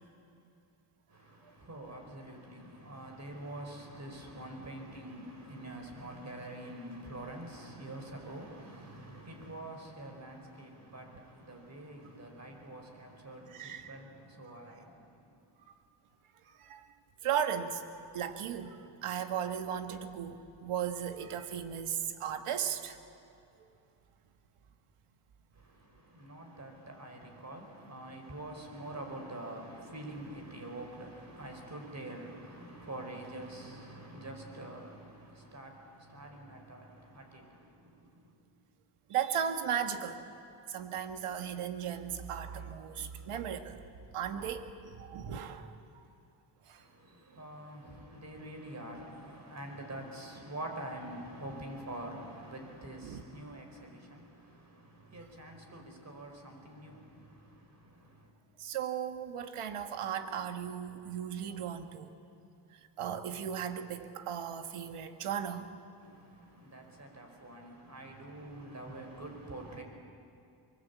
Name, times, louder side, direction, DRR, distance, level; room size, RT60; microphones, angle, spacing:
voice 1, 1.1-15.3 25.5-38.3 46.7-58.3 66.0-69.8, right 1 dB, 30° right, 3 dB, 5.1 m, -46 dB
voice 2, 13.5-14.0 14.4-14.6 16.5-16.8 17.2-23.0 39.1-40.2 40.7-43.8 44.1-46.0 46.7-46.8 53.0-53.2 58.6-62.1 62.7-65.7, right 8 dB, 80° right, 8 dB, 1.7 m, -36 dB
23.5 x 22.5 x 8.4 m, 2.6 s
cardioid pair, 85°, 50 cm